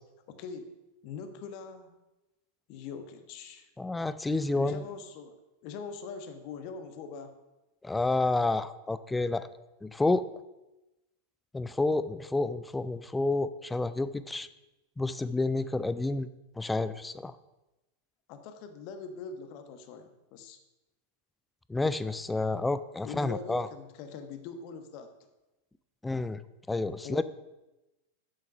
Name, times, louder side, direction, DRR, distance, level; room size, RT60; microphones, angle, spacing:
voice 1, 0.3-0.7 1.0-2.0 2.7-3.7 4.5-5.4 5.6-7.3 18.3-20.6 23.0-25.1 27.0-27.2, left 5 dB, 45° left, 8 dB, 1.1 m, -42 dB
voice 2, 3.8-4.8 7.8-9.5 9.8-10.3 11.5-14.5 15.0-16.3 16.6-17.3 21.7-23.7 26.0-26.4 26.7-27.2, left 2 dB, 10° left, 15 dB, 0.4 m, -29 dB
7.6 x 7.1 x 5.7 m, 1.0 s
figure-of-eight pair, 90°, 0 cm